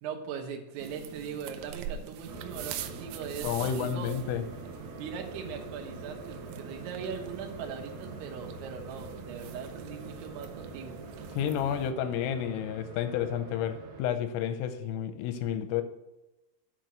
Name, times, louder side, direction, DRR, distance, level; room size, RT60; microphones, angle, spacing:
voice 1, 0.0-4.1 4.9-11.0, right 6 dB, 75° right, 3.3 m, -40 dB
sound 1, 0.8-11.9, right 10 dB, 90° right, 2.5 m, -44 dB
sound 2, 2.3-14.0, right 2 dB, 50° right, 3.4 m, -45 dB
voice 2, 3.4-4.4 11.4-15.8, left 9 dB, 90° left, 3.3 m, -31 dB
9.4 x 4.5 x 7.4 m
omnidirectional pair, 5.8 m